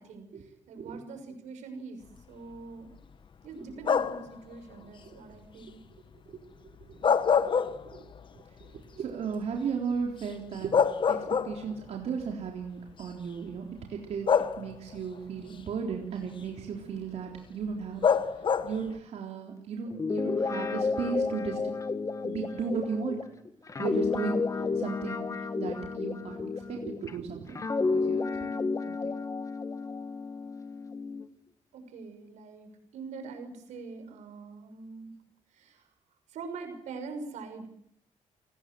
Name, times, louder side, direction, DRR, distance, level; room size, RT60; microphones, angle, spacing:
voice 1, 0.0-2.0 2.3-2.9 3.4-5.8 7.0-7.2 31.7-35.1 35.5-35.9 36.3-37.7, right 4 dB, 90° right, 7 dB, 6.1 m, -43 dB
sound 1, 3.8-4.3 6.8-8.2 8.6-8.7 10.2-10.3 10.7-11.9 12.9-13.0 14.3-15.0 18.0-18.9, left 6 dB, 45° left, 1.3 m, -25 dB
voice 2, 6.3-7.0 7.5-8.1 8.6-14.3 14.6-21.7 22.2-23.2 23.8-27.6 27.9-29.2, right 6 dB, 65° right, 1 dB, 3.7 m, -36 dB
Guitar, 19.9-27.1 27.6-31.3, left 4 dB, 25° left, 1.6 m, -31 dB
29.0 x 19.5 x 7.7 m, 0.72 s
cardioid pair, 115°, 12 cm